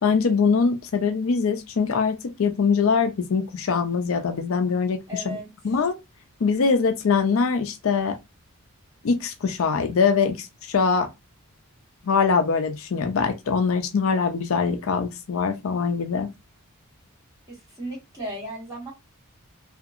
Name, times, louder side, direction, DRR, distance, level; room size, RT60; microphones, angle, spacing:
voice 1, 0.0-5.4 5.6-6.0 6.4-8.2 9.0-11.1 12.0-16.3, left 5 dB, 65° left, 0.4 m, -23 dB
voice 2, 5.1-5.5 17.5-18.9, right 1 dB, 15° right, 1.3 m, -35 dB
2.7 x 2.4 x 2.4 m
head